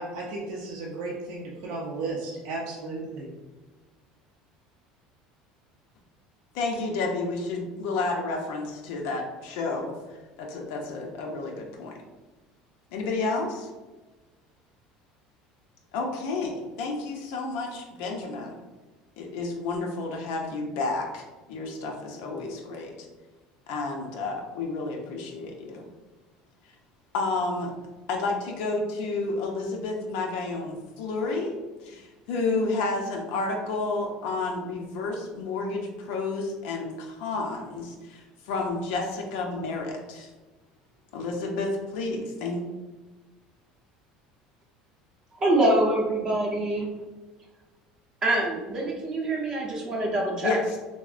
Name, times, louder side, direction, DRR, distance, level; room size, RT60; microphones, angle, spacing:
voice 1, 0.0-3.3, right 3 dB, 80° right, -3 dB, 0.5 m, -34 dB
voice 2, 6.5-12.0 12.9-13.7 15.9-18.6 19.2-21.2 21.5-22.9 23.7-25.9 27.1-27.7 28.1-31.6 31.8-40.3 41.1-42.6 50.4-50.8, left 3 dB, 75° left, 0 dB, 0.4 m, -31 dB
voice 3, 45.4-46.9 48.2-50.6, right 1 dB, 30° right, -2 dB, 0.6 m, -25 dB
3.5 x 2.0 x 2.4 m, 1.2 s
cardioid pair, 150°, 2 cm